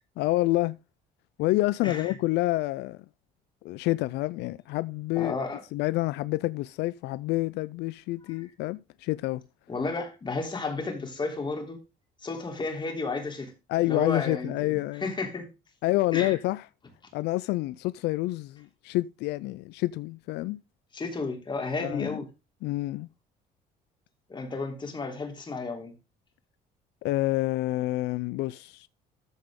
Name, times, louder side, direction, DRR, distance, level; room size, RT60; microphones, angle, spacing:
voice 1, 0.2-0.8 1.4-3.0 3.6-5.4 5.7-9.4 13.7-15.1 15.8-16.7 17.1-20.6 21.8-22.2 22.6-23.1 27.0-28.9, left 18 dB, 80° left, 0.4 m, -28 dB
voice 2, 1.8-2.1 5.1-5.6 9.7-11.8 12.2-13.5 13.8-15.4 16.1-16.3 20.9-22.3 24.3-25.9, left 3 dB, 25° left, 3.2 m, -32 dB
14.0 x 5.1 x 3.7 m
cardioid pair, 110°, 17 cm